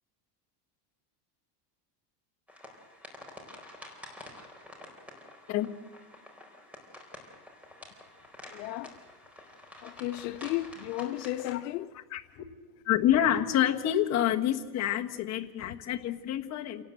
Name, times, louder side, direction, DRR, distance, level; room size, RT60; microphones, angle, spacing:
sound 1, 2.5-11.5, left 1 dB, 5° right, 4.2 m, -49 dB
voice 1, 8.5-9.0 9.8-11.9 15.6-15.8, left 15 dB, 85° left, 0.9 m, -34 dB
voice 2, 12.1-12.4 12.8-16.8, left 11 dB, 35° left, 1.5 m, -27 dB
27.5 x 18.5 x 7.9 m
cardioid pair, 155°, 48 cm